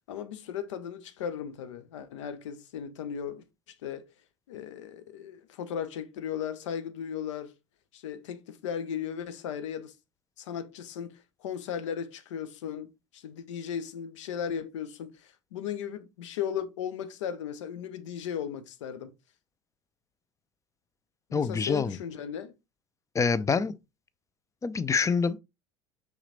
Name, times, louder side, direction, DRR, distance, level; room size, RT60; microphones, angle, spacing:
voice 1, 0.1-4.1 4.5-7.5 7.9-9.9 10.4-19.1 21.3-22.5, left 8 dB, 70° left, 1.0 m, -36 dB
voice 2, 21.3-22.0 23.1-23.8 24.6-25.4, left 5 dB, 20° left, 0.6 m, -26 dB
5.9 x 3.9 x 4.1 m
hypercardioid pair, 75°, 16 cm